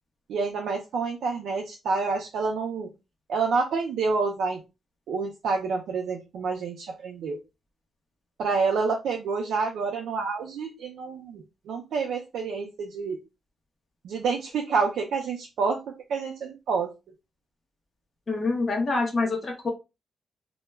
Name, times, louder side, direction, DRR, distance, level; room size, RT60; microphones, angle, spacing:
voice 1, 0.3-2.9 3.3-4.6 5.1-7.4 8.4-13.2 14.0-15.8 16.1-16.9, right 4 dB, 80° right, 1 dB, 0.4 m, -28 dB
voice 2, 18.3-19.7, left 3 dB, 35° left, 0 dB, 0.7 m, -26 dB
2.2 x 2.1 x 3.3 m, 0.26 s
cardioid pair, 135°, 0 cm